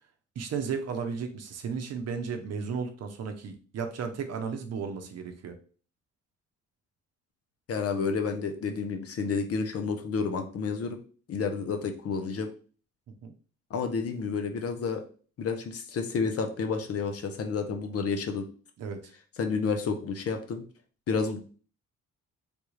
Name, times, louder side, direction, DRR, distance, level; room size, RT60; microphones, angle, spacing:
voice 1, 0.4-5.6 13.1-13.3 18.8-19.1, right 6 dB, 55° right, 6 dB, 0.7 m, -34 dB
voice 2, 7.7-11.0 11.3-12.5 13.7-15.0 15.4-18.5 19.4-20.6 21.1-21.4, left 5 dB, 50° left, 6 dB, 0.7 m, -30 dB
3.4 x 2.3 x 3.1 m, 0.39 s
cardioid pair, 90°, 30 cm